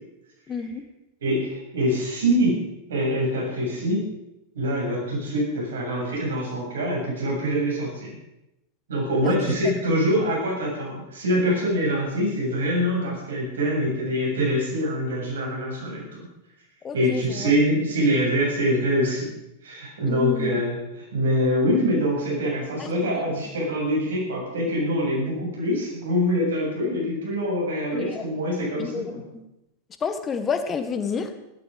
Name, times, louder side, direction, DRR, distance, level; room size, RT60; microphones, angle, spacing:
voice 1, 0.5-0.8 9.2-9.3 16.8-17.5 20.1-20.5 22.8-22.9 27.9-28.2 28.8-29.0 29.3-29.4 30.0-31.3, left 6 dB, 20° left, 9 dB, 1.6 m, -29 dB
voice 2, 1.2-2.6 2.9-4.0 4.5-8.1 8.9-16.0 16.9-19.3 19.6-29.2, equal, 65° right, -3 dB, 7.8 m, -24 dB
16.0 x 13.5 x 5.2 m, 0.89 s
figure-of-eight pair, 90°, 0 cm